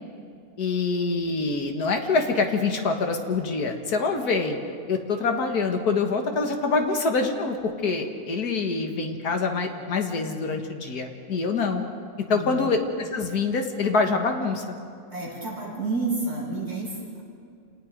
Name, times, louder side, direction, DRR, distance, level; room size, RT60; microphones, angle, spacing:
voice 1, 0.6-4.6 4.9-11.8 12.3-14.6, left 4 dB, 90° left, 4 dB, 2.1 m, -25 dB
voice 2, 12.3-12.7 15.1-17.2, right 3 dB, 45° right, -5 dB, 7.2 m, -30 dB
27.5 x 19.0 x 5.2 m, 2.3 s
omnidirectional pair, 1.6 m